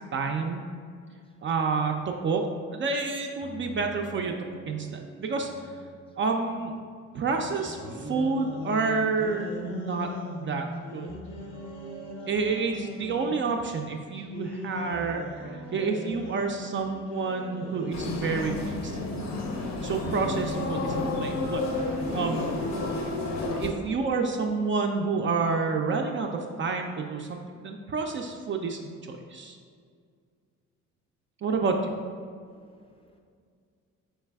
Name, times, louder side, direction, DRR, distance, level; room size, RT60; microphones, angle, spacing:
voice 1, 0.1-0.6 1.4-2.5 2.7-4.3 4.7-5.5 6.2-6.7 7.1-10.7 10.9-11.1 12.3-19.0 19.8-22.5 23.5-26.3 26.6-28.8 29.1-29.6 31.4-31.8, right 4 dB, 40° right, 3 dB, 0.4 m, -29 dB
sound 1, 3.4-19.9, right 3 dB, 15° right, 0.8 m, -48 dB
sound 2, 7.6-13.4 14.2-19.2, left 2 dB, 90° left, 0.9 m, -40 dB
sound 3, 17.9-23.7, left 2 dB, 60° left, 0.7 m, -31 dB
voice 2, 22.2-22.5 32.5-33.2, left 2 dB, 20° left, 2 dB, 0.5 m, -53 dB
4.5 x 3.2 x 3.4 m, 2.1 s
cardioid pair, 90°, 30 cm